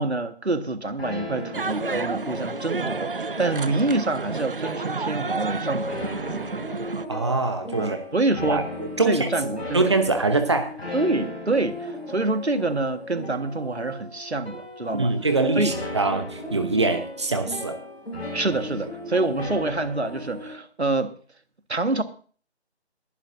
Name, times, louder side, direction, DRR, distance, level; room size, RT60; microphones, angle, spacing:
voice 1, 0.0-6.0 7.8-8.7 9.0-9.9 10.9-15.1 15.5-15.7 16.5-16.7 18.3-21.1 21.7-22.0, right 2 dB, 75° right, 1.6 m, -26 dB
sound 1, 1.0-20.5, left 1 dB, 75° left, 5.5 m, -36 dB
sound 2, 1.5-7.0, right 4 dB, 55° right, 0.6 m, -30 dB
voice 2, 7.1-8.0 8.5-9.3 9.7-10.7 14.9-17.8, right 3 dB, 25° right, 1.0 m, -23 dB
22.0 x 11.0 x 2.6 m
figure-of-eight pair, 160°, 33 cm